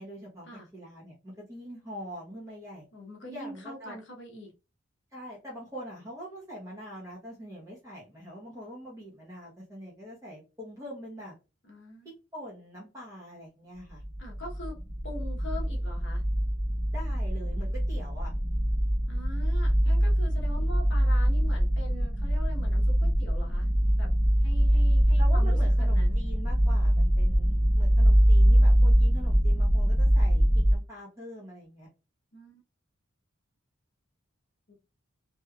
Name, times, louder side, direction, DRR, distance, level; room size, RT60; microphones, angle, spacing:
voice 1, 0.0-0.5 0.7-2.9 3.2-4.0 5.1-11.3 12.0-14.0 16.9-18.3 25.2-31.9, equal, 15° right, -5 dB, 1.0 m, -43 dB
voice 2, 2.9-4.5 11.7-12.1 14.2-14.8 15.0-16.2 19.1-23.7 24.0-24.1 24.4-26.2 32.3-32.6 34.7-34.8, left 1 dB, 60° left, 0 dB, 1.0 m, -43 dB
sound 1, 14.0-30.7, equal, 5° left, 0.6 m, -23 dB
3.2 x 3.1 x 2.3 m, 0.29 s
head